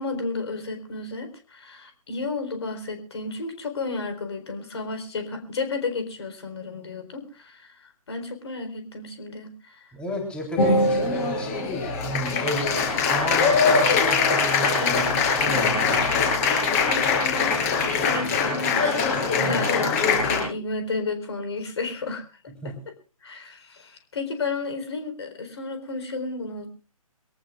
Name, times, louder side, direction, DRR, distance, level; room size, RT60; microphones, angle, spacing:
voice 1, 0.0-9.9 14.8-15.2 16.9-22.2 22.6-22.7 23.2-26.7, left 3 dB, 45° left, 7 dB, 4.2 m, -32 dB
voice 2, 9.9-16.1 19.4-19.6 22.6-22.8, equal, 5° left, 0 dB, 3.6 m, -33 dB
Applause, 10.6-20.4, left 4 dB, 25° left, 5.9 m, -22 dB
24.0 x 18.0 x 2.4 m, 0.35 s
figure-of-eight pair, 140°, 19 cm